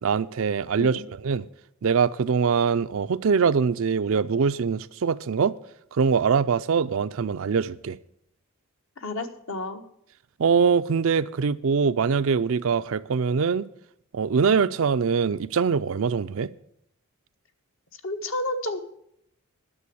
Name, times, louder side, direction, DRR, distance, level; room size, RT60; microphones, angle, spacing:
voice 1, 0.0-1.5 1.8-5.5 5.9-8.0 10.4-13.7 14.1-16.5, right 5 dB, 65° right, 0.4 m, -23 dB
voice 2, 9.0-9.8 18.0-18.8, left 2 dB, 60° left, 1.2 m, -31 dB
11.5 x 6.9 x 8.2 m
head